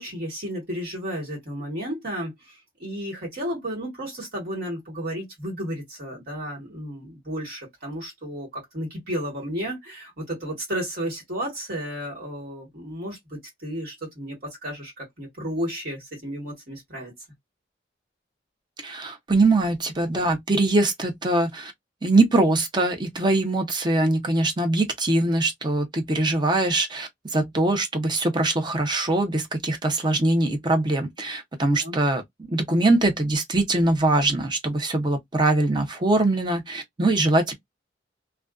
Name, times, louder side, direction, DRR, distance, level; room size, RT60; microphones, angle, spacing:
voice 1, 0.0-2.3 2.8-17.1 31.8-32.0, equal, 55° right, 1.3 m, -33 dB
voice 2, 18.8-21.7 22.0-32.2 32.5-37.5, right 2 dB, 25° right, 0.5 m, -22 dB
2.4 x 2.2 x 2.3 m
head